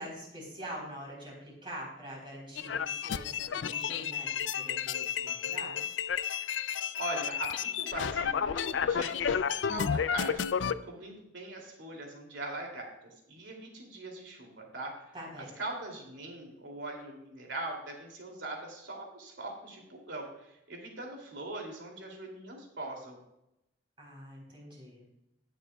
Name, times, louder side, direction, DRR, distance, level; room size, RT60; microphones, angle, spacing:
voice 1, 0.0-6.0 15.1-15.5 24.0-25.0, equal, 30° right, -3 dB, 3.8 m, -45 dB
sound 1, 2.6-10.7, left 7 dB, 85° left, 0.4 m, -32 dB
voice 2, 7.0-10.4 10.8-12.9 13.3-14.9 15.6-23.2, right 2 dB, 80° right, 1 dB, 2.8 m, -41 dB
20.5 x 6.8 x 2.3 m, 0.86 s
head